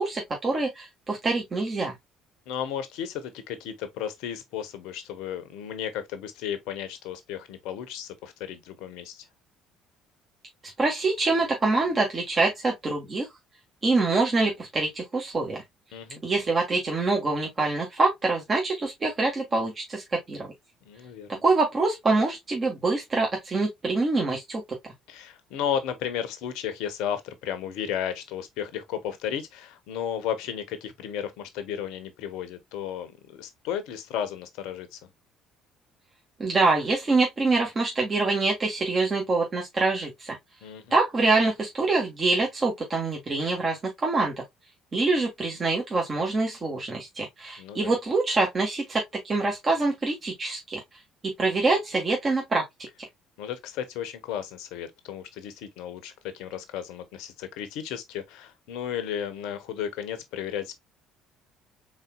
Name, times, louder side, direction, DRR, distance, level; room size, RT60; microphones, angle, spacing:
voice 1, 0.0-1.9 10.8-13.3 13.8-15.6 16.2-20.5 21.4-24.6 36.4-40.4 40.9-44.3 44.9-50.8 51.2-52.6, right 3 dB, 35° right, 1.6 m, -25 dB
voice 2, 2.5-9.2 15.9-16.2 20.8-21.4 25.1-35.0 40.6-40.9 47.6-47.9 53.4-60.7, left 9 dB, 65° left, 0.8 m, -34 dB
4.1 x 3.9 x 2.2 m
hypercardioid pair, 55°, 0 cm